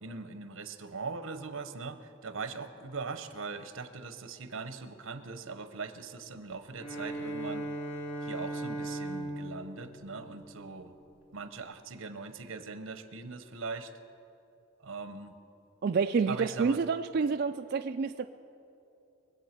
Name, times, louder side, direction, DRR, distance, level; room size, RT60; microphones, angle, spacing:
voice 1, 0.0-7.7 8.2-10.9 11.3-13.9 14.8-15.3 16.3-16.8, right 4 dB, 80° right, 10 dB, 1.0 m, -40 dB
Bowed string instrument, 6.7-11.1, right 1 dB, 65° left, 2.6 m, -38 dB
voice 2, 15.8-18.3, right 5 dB, 50° right, 6 dB, 0.3 m, -28 dB
23.5 x 8.1 x 6.0 m, 2.8 s
head